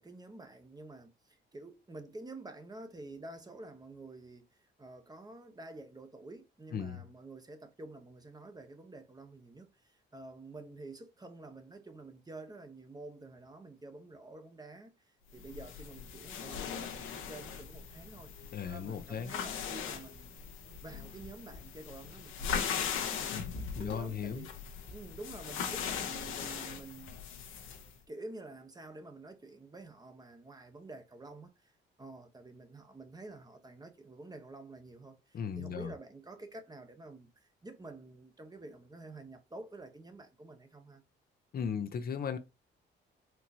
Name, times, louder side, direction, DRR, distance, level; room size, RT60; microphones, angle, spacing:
voice 1, 0.0-4.4 4.8-20.4 20.8-23.4 23.8-24.6 24.9-27.2 28.1-31.7 32.0-41.0, right 2 dB, 20° right, 0.8 m, -49 dB
sound 1, 15.4-27.9, left 7 dB, 85° left, 0.9 m, -39 dB
voice 2, 18.5-19.3 23.8-24.5 35.3-35.9 41.5-42.4, left 7 dB, 50° left, 0.6 m, -36 dB
4.4 x 2.9 x 2.6 m
cardioid pair, 90°, 20 cm